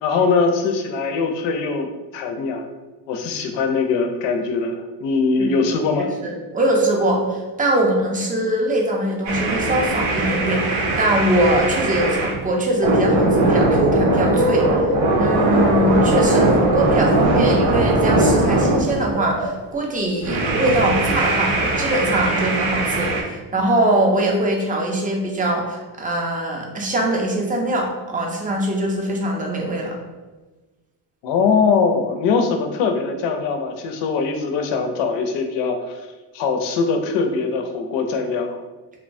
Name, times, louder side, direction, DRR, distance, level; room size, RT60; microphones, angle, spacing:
voice 1, 0.0-2.7 3.1-4.8 5.0-6.1 31.2-36.0 36.3-38.6, left 4 dB, 65° left, 5 dB, 0.5 m, -21 dB
voice 2, 6.2-14.8 15.2-30.0, right 1 dB, 20° right, 0 dB, 0.5 m, -22 dB
sound 1, 9.3-12.4 12.8-19.5 20.2-23.2, right 2 dB, 80° right, 0.7 m, -19 dB
2.9 x 2.1 x 2.5 m, 1.2 s
cardioid pair, 100°, 47 cm